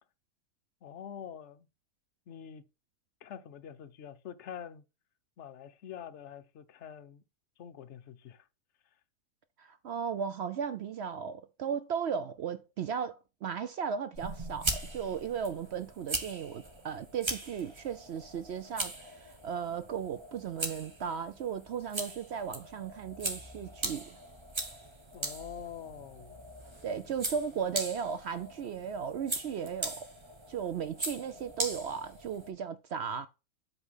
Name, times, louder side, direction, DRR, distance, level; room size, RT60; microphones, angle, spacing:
voice 1, 0.8-1.7 2.3-2.7 3.2-4.8 5.4-7.2 7.6-8.5 25.1-26.5, left 9 dB, 55° left, 0.9 m, -45 dB
voice 2, 9.6-19.1 19.4-24.2 26.8-30.1 30.5-33.3, right 7 dB, 70° right, 0.6 m, -36 dB
sound 1, 14.1-32.5, right 2 dB, 20° right, 0.8 m, -40 dB
8.1 x 3.3 x 5.5 m
omnidirectional pair, 1.6 m